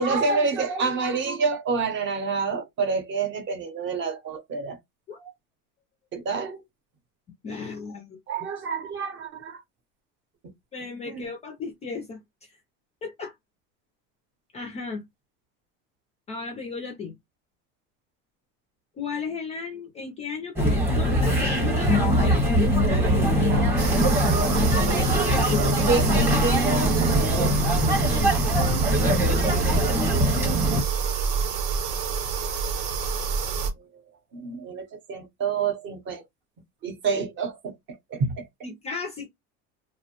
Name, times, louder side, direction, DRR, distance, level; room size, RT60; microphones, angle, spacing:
voice 1, 0.0-4.8 6.1-6.6 8.3-9.6 11.1-11.2 23.0-23.8 24.5-24.7 25.6-27.6 34.3-36.2 36.8-38.5, right 4 dB, 35° right, 0.7 m, -28 dB
voice 2, 7.4-8.2 10.7-12.5 13.0-13.3 14.5-15.0 16.3-17.1 19.0-22.4 25.2-25.7 27.9-28.3 38.6-39.3, left 5 dB, 20° left, 0.3 m, -35 dB
sound 1, 20.6-30.8, equal, 5° right, 0.8 m, -22 dB
sound 2, 23.8-33.7, right 6 dB, 85° right, 0.9 m, -28 dB
2.5 x 2.0 x 2.8 m
cardioid pair, 155°, 33 cm